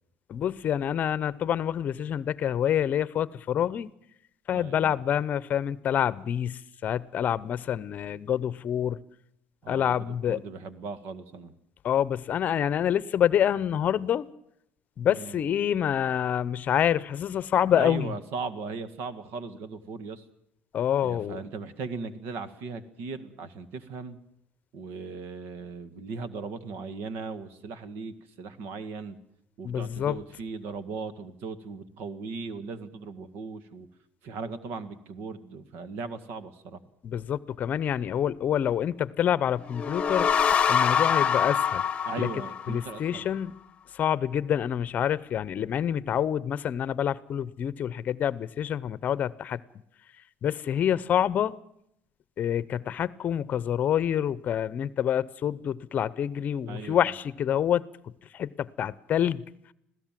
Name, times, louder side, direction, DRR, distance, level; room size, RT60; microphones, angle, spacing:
voice 1, 0.3-3.9 4.5-9.0 9.7-10.4 11.8-14.3 15.0-18.1 20.7-21.4 29.6-30.2 37.0-40.3 40.7-41.8 42.2-42.3 42.7-43.6 43.9-49.6 50.4-51.6 52.4-57.8 58.3-59.4, left 9 dB, 45° left, 19 dB, 0.8 m, -27 dB
voice 2, 4.5-5.0 9.6-11.5 15.1-15.4 17.7-20.2 21.0-24.2 24.7-29.2 29.6-33.9 34.2-36.8 42.1-43.3 56.7-57.1, right 4 dB, 70° right, 13 dB, 1.9 m, -38 dB
sound 1, 39.6-43.2, left 7 dB, 30° left, 1.1 m, -25 dB
26.0 x 16.5 x 7.5 m, 0.75 s
cardioid pair, 130°, 4 cm